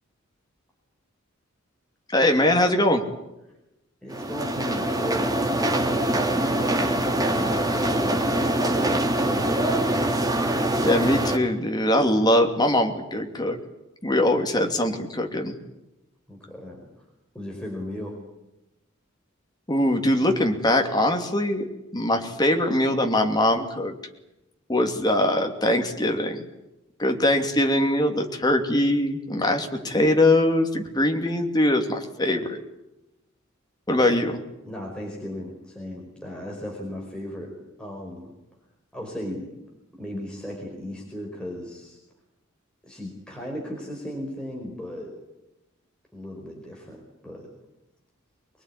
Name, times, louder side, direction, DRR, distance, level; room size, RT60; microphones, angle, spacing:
voice 1, 2.1-3.0 10.8-13.6 14.0-15.5 19.7-23.9 24.7-26.4 27.0-32.6 33.9-34.4, left 1 dB, 20° left, 4 dB, 2.7 m, -22 dB
voice 2, 4.0-9.6 16.3-16.9 17.3-18.1 29.8-30.1 33.9-34.1 34.6-37.5 37.8-38.3 38.9-39.4 40.0-42.0 42.8-45.1 46.1-47.0 47.2-47.4, left 1 dB, 5° left, -1 dB, 5.0 m, -36 dB
sound 1, 4.1-11.4, right 1 dB, 20° right, 2.7 m, -24 dB
25.0 x 21.5 x 9.9 m, 0.95 s
head